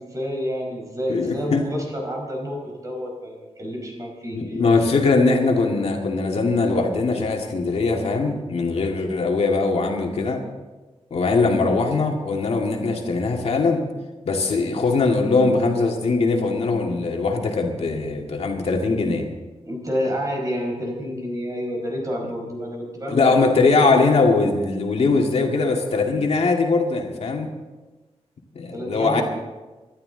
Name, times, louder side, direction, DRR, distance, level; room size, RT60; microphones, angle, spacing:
voice 1, 0.0-4.6 19.6-24.1 28.7-29.2, equal, 30° right, 0 dB, 4.8 m, -29 dB
voice 2, 1.1-1.7 4.3-10.4 11.1-13.8 14.3-19.3 23.1-27.5 28.6-29.2, left 3 dB, 70° left, 1 dB, 2.1 m, -21 dB
25.5 x 12.0 x 4.0 m, 1.2 s
wide cardioid pair, 140°, 11 cm